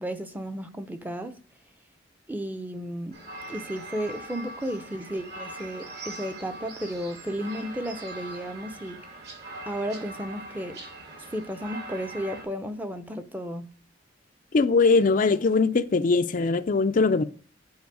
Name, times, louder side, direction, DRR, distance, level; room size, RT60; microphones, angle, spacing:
voice 1, 0.0-1.3 2.3-3.2 3.5-9.0 9.7-10.8 11.3-13.7, equal, 10° right, 0.6 m, -33 dB
sound 1, 3.1-12.4, right 2 dB, 60° right, 2.9 m, -41 dB
voice 2, 14.5-17.2, left 4 dB, 45° left, 0.4 m, -21 dB
9.5 x 4.4 x 4.7 m
head